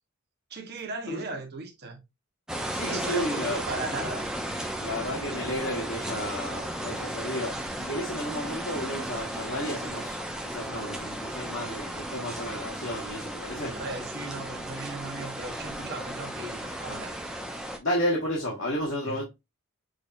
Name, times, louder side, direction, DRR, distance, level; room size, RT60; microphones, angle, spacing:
voice 1, 0.5-2.0 2.8-4.3 13.6-17.1 19.0-19.2, right 2 dB, 45° right, 1.1 m, -37 dB
sound 1, 2.5-17.8, right 1 dB, 5° right, 0.5 m, -35 dB
voice 2, 2.7-3.6 4.8-10.2 10.4-13.7 17.8-19.2, equal, 60° left, 1.3 m, -32 dB
6.3 x 2.8 x 2.5 m
head